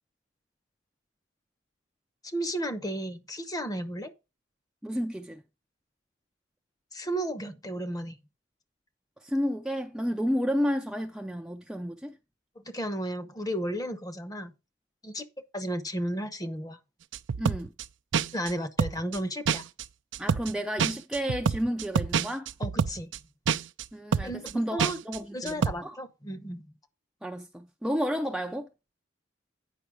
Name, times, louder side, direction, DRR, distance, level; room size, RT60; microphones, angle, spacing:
voice 1, 2.2-4.1 6.9-8.2 12.6-14.5 15.0-15.3 15.5-16.8 18.3-19.7 22.6-23.1 24.2-25.0 25.3-26.7, right 1 dB, 20° left, 0.8 m, -33 dB
voice 2, 4.8-5.4 9.2-12.2 17.4-17.7 20.2-22.5 23.9-26.0 27.2-28.7, equal, 5° right, 0.4 m, -31 dB
sound 1, 17.1-17.8 18.1-18.5 18.8-19.2 19.5-19.8 20.1-20.5 20.8-23.2 23.5-23.8 24.1-24.5 24.8-25.2 25.5-25.7, right 6 dB, 75° right, 0.5 m, -27 dB
9.2 x 5.5 x 4.9 m
head